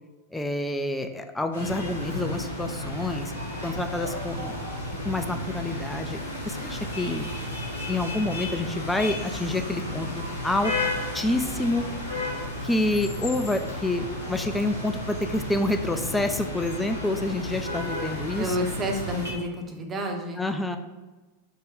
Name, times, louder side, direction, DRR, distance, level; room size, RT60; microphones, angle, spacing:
voice 1, 0.3-3.3 3.6-4.6 4.8-6.2 6.4-7.3 7.9-10.7 11.1-11.9 12.6-18.6 20.4-20.8, left 2 dB, 5° left, 6 dB, 0.3 m, -28 dB
sound 1, 1.5-19.3, left 1 dB, 80° left, 1.5 m, -33 dB
voice 2, 18.3-20.4, equal, 25° right, 3 dB, 0.6 m, -30 dB
4.7 x 2.2 x 3.6 m, 1.2 s
figure-of-eight pair, 90°, 0 cm